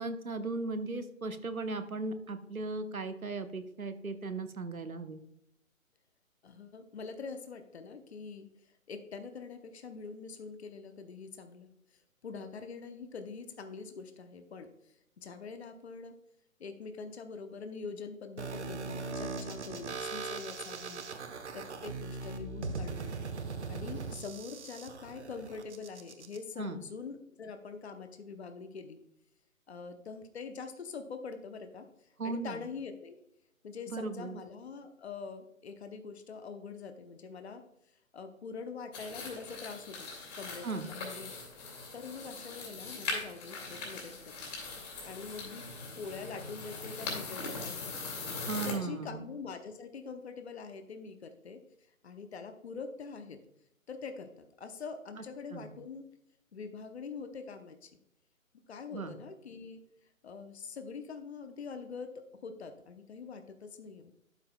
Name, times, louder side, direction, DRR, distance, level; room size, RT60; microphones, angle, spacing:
voice 1, 0.0-5.2 26.6-26.8 32.2-32.6 33.9-34.4 40.6-40.9 48.5-49.2 55.5-55.7 58.9-59.2, right 3 dB, 85° right, 10 dB, 1.0 m, -37 dB
voice 2, 6.4-8.5 8.9-11.7 12.2-14.7 15.2-16.2 16.6-21.0 21.5-23.1 23.7-29.0 29.7-31.9 32.2-33.2 33.6-37.6 38.1-40.1 40.4-41.3 41.9-44.5 45.0-45.6 46.0-48.2 48.6-51.6 52.0-53.4 53.9-56.1 56.5-57.9 58.7-59.8 60.2-64.2, left 5 dB, 50° left, 8 dB, 0.9 m, -44 dB
sound 1, 18.4-26.4, right 4 dB, 55° right, 0.9 m, -40 dB
sound 2, 38.9-48.7, left 3 dB, 30° left, 2.3 m, -41 dB
12.0 x 5.6 x 2.2 m, 0.81 s
figure-of-eight pair, 140°, 41 cm